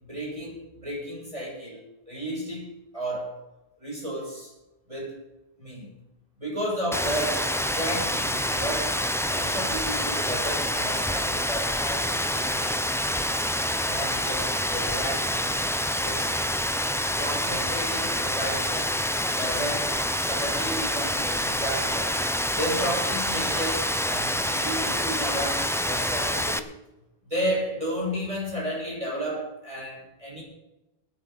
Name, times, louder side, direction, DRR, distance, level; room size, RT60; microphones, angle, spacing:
voice 1, 0.0-1.8 2.1-3.4 3.8-4.5 4.9-5.2 5.6-5.9 6.4-9.0 9.3-13.5 13.8-15.6 16.0-16.4 17.2-18.9 19.3-19.9 20.2-22.2 22.5-26.7 27.2-30.4, equal, 30° right, -4 dB, 6.9 m, -33 dB
Rain, 6.9-26.6, equal, 5° left, 0.5 m, -27 dB
19.0 x 10.5 x 4.1 m, 0.97 s
omnidirectional pair, 1.1 m